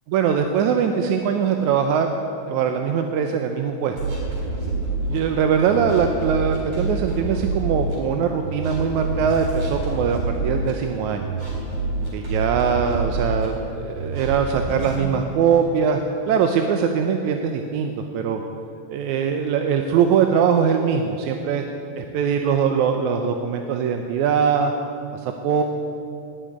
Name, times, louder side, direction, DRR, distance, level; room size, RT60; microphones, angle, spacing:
voice 1, 0.1-2.1 2.5-4.0 5.0-11.3 12.1-18.4 18.9-21.7 21.9-24.7 25.1-25.6, right 7 dB, 80° right, 5 dB, 2.1 m, -22 dB
sound 1, 4.0-5.2 5.7-7.9 8.4-10.7 11.2-13.5 14.0-15.0, right 2 dB, 45° right, 5.1 m, -27 dB
19.0 x 7.6 x 9.3 m, 2.6 s
omnidirectional pair, 3.4 m